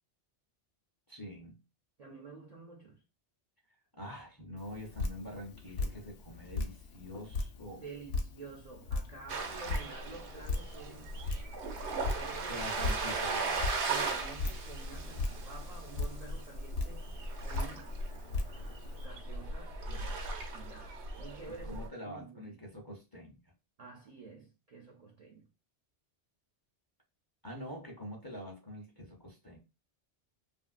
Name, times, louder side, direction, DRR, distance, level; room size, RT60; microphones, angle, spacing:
voice 1, 1.1-1.6 3.9-7.8 12.5-13.7 21.6-23.4 27.4-29.6, equal, 25° left, 0.6 m, -45 dB
voice 2, 2.0-3.0 7.7-11.2 12.0-13.0 13.9-17.9 19.0-20.2 20.5-22.6 23.8-25.5, right 4 dB, 55° right, 0.4 m, -50 dB
Drip, 4.6-19.1, left 3 dB, 70° left, 0.8 m, -39 dB
sound 1, 9.3-21.9, right 3 dB, 85° right, 1.0 m, -38 dB
2.9 x 2.6 x 2.4 m
omnidirectional pair, 1.1 m